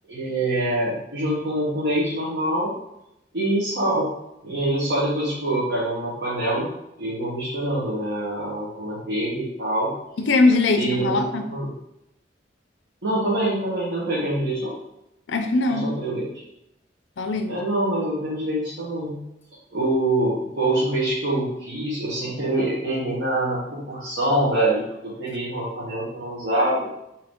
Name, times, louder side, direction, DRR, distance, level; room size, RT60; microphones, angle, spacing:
voice 1, 0.1-2.7 3.3-4.1 4.4-6.7 7.0-9.9 10.7-11.2 11.5-11.7 13.0-14.7 15.7-16.3 17.5-19.2 19.7-26.9, right 1 dB, 65° right, -8 dB, 1.2 m, -25 dB
voice 2, 10.2-11.4 15.3-15.9 17.2-17.5, left 3 dB, 75° left, 6 dB, 0.5 m, -21 dB
4.6 x 2.8 x 3.6 m, 0.85 s
head